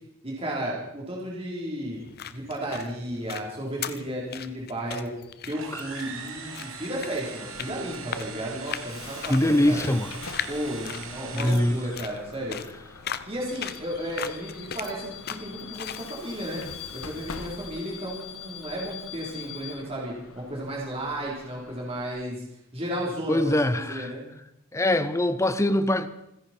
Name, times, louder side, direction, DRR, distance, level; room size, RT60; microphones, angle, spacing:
voice 1, 0.2-2.0 2.3-5.1 5.4-9.9 10.5-12.8 13.3-16.6 16.9-22.4 22.7-24.3, right 1 dB, 30° right, 3.6 m, -33 dB
sound 1, 1.9-16.1, left 9 dB, 50° left, 0.7 m, -39 dB
sound 2, 5.5-12.2, right 5 dB, 70° right, 2.2 m, -41 dB
Bus / Alarm, 7.5-22.1, left 6 dB, 80° left, 1.4 m, -44 dB
voice 2, 9.3-10.1 11.3-11.8 23.3-24.1 24.7-26.1, left 1 dB, 15° left, 0.7 m, -23 dB
28.0 x 10.5 x 4.4 m
head